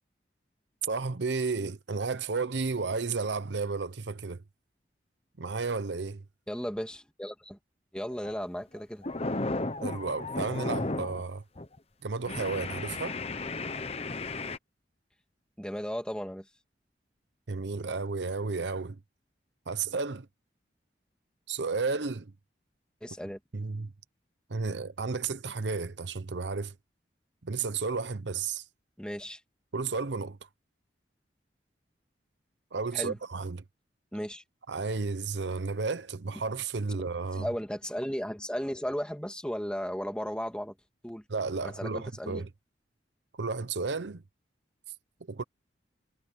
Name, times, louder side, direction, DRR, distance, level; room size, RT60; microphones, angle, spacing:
voice 1, 0.8-4.4 5.4-6.2 9.8-11.4 12.0-13.2 17.5-19.0 19.7-20.3 21.5-22.3 23.5-23.9 24.5-26.7 27.4-28.6 29.7-30.4 32.7-33.6 34.7-37.5 41.3-42.5 43.4-44.2 45.3-45.4, right 4 dB, 80° right, 0.8 m, -32 dB
voice 2, 6.5-7.6 7.9-9.1 15.6-16.5 23.0-23.4 29.0-29.4 32.9-33.2 34.1-34.4 37.3-40.7 41.0-41.2 41.6-42.4, equal, 5° left, 2.7 m, -35 dB
sound 1, 8.1-8.4 8.8-11.2 11.6-11.8 12.2-14.6, left 2 dB, 35° left, 1.0 m, -34 dB
head